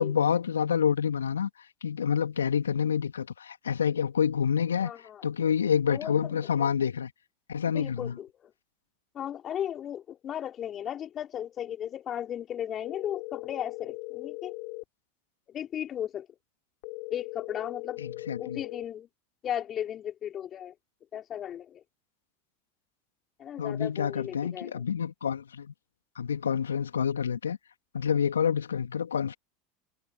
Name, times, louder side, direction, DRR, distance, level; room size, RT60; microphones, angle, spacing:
voice 1, 0.0-1.5 1.8-7.1 7.5-8.1 18.0-18.6 23.6-25.7 26.2-27.6 27.9-29.3, left 7 dB, 80° left, 2.6 m, -28 dB
voice 2, 4.8-5.2 5.9-6.7 7.7-8.5 9.1-14.5 15.5-16.3 17.1-18.0 18.4-19.1 19.4-20.7 21.1-21.8 23.4-24.8, left 10 dB, 35° left, 2.9 m, -36 dB
sound 1, 12.8-14.8 16.8-18.8, left 34 dB, 55° left, 3.2 m, -39 dB
figure-of-eight pair, 80°, 0 cm